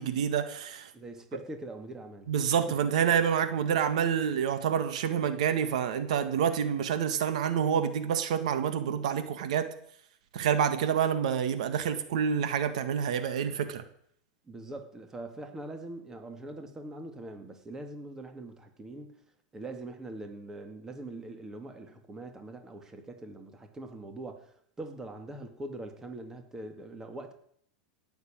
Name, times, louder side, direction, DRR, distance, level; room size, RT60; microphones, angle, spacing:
voice 1, 0.0-0.9 2.3-9.7 10.3-13.8, right 8 dB, 75° right, 10 dB, 1.8 m, -28 dB
voice 2, 0.9-2.3 2.7-2.8 14.5-19.2 19.5-27.3, right 2 dB, 15° right, 6 dB, 2.2 m, -42 dB
17.5 x 7.2 x 8.9 m, 0.67 s
supercardioid pair, 130°, 4 cm